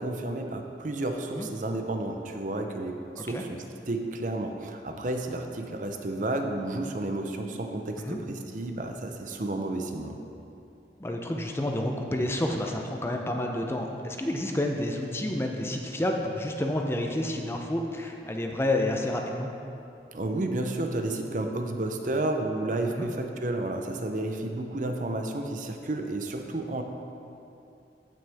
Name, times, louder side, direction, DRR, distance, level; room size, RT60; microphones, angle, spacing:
voice 1, 0.0-10.2 20.1-26.8, right 2 dB, 45° right, 4 dB, 0.6 m, -31 dB
voice 2, 11.0-19.5 22.9-23.1, left 1 dB, 15° left, 2 dB, 0.5 m, -29 dB
14.5 x 6.1 x 3.4 m, 2.7 s
head